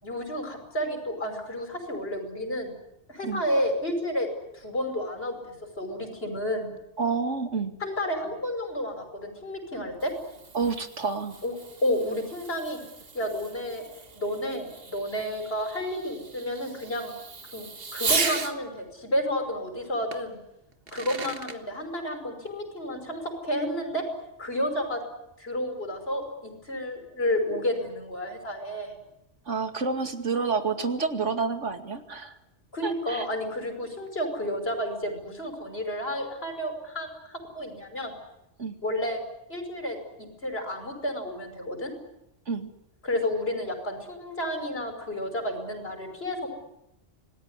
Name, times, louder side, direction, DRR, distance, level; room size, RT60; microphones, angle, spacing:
voice 1, 0.0-2.7 3.1-6.8 7.8-10.1 11.4-11.5 11.8-12.8 13.1-17.1 17.5-20.4 20.9-24.0 24.4-25.0 25.4-29.0 32.7-38.1 38.8-39.2 39.5-41.9 43.0-46.5, equal, 55° left, 5 dB, 5.9 m, -31 dB
voice 2, 7.0-7.7 10.5-11.4 29.5-32.4 32.8-33.3 38.6-38.8 42.5-42.7, right 4 dB, 85° right, 7 dB, 2.6 m, -29 dB
Fireworks, 9.7-18.6 20.1-20.2 20.7-21.6, right 4 dB, 55° right, 1.8 m, -35 dB
27.0 x 19.5 x 9.8 m, 0.83 s
omnidirectional pair, 1.2 m